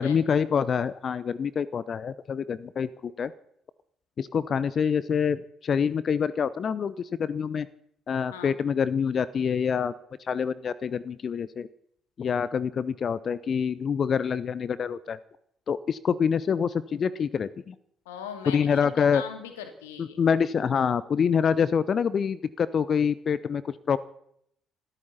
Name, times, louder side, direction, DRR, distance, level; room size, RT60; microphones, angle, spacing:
voice 1, 0.0-3.3 4.2-7.7 8.1-9.9 10.3-11.7 12.2-15.2 15.7-17.7 18.5-19.2 20.0-24.0, left 7 dB, 45° left, 18 dB, 0.8 m, -26 dB
voice 2, 18.1-20.2, left 7 dB, 75° left, 7 dB, 2.3 m, -40 dB
26.0 x 13.5 x 4.2 m, 0.69 s
figure-of-eight pair, 45°, 0 cm